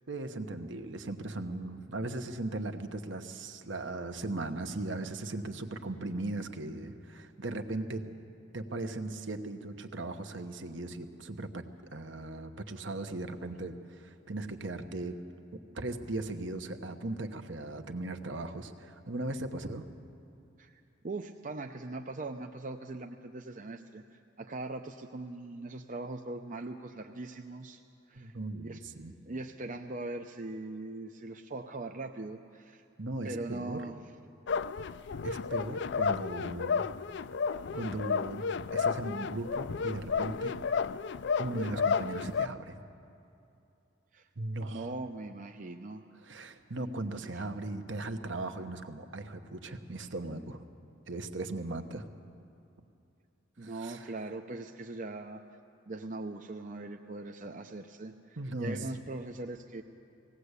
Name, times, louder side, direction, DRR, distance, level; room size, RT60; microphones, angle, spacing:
voice 1, 0.1-8.1 8.5-11.6 11.9-15.2 15.7-19.9 28.1-29.1 33.0-33.8 35.2-36.8 37.7-38.4 38.7-40.5 41.4-42.8 44.4-45.0 46.2-50.6 51.1-52.1 53.6-54.1 58.4-59.0, right 2 dB, 65° right, 8 dB, 1.2 m, -38 dB
voice 2, 21.0-27.8 28.1-28.3 28.6-28.8 29.3-32.8 33.2-34.0 44.1-44.3 44.7-46.0 47.3-47.4 53.6-55.4 55.9-59.8, right 2 dB, 40° right, 4 dB, 0.6 m, -41 dB
sound 1, 34.5-42.5, left 5 dB, 60° left, 0.4 m, -32 dB
19.5 x 17.5 x 8.2 m, 2.7 s
head